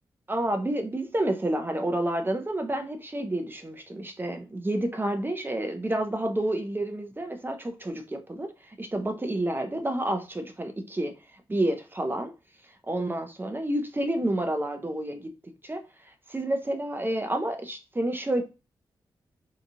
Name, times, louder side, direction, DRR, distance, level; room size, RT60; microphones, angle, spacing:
voice 1, 0.3-11.1 11.5-12.3 12.9-15.3 15.6-15.8 16.3-18.4, right 1 dB, 25° right, 0.7 m, -29 dB
2.8 x 2.4 x 2.7 m
cardioid pair, 50°, 9 cm